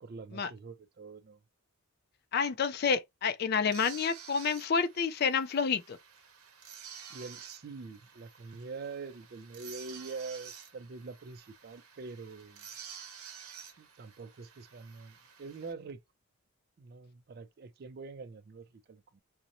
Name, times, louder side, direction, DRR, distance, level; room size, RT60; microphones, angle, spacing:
voice 1, 0.0-1.4 7.1-12.7 13.8-16.0 16.8-19.2, right 4 dB, 45° right, 0.3 m, -45 dB
voice 2, 2.3-6.0, left 6 dB, 45° left, 0.3 m, -29 dB
sound 1, 3.7-15.7, right 7 dB, 85° right, 0.7 m, -51 dB
2.5 x 2.0 x 2.8 m
head